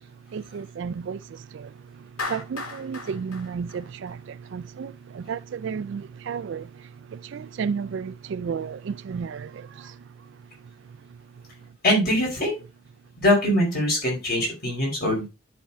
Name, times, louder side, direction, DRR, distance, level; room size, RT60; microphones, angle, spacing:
voice 1, 0.3-1.7 2.3-6.7 7.1-10.0, right 6 dB, 60° right, 0.3 m, -33 dB
Clapping, 2.2-4.5, left 3 dB, 85° left, 1.9 m, -36 dB
voice 2, 11.8-12.6 13.2-15.2, left 1 dB, 45° left, 4.7 m, -22 dB
11.0 x 4.4 x 3.4 m
head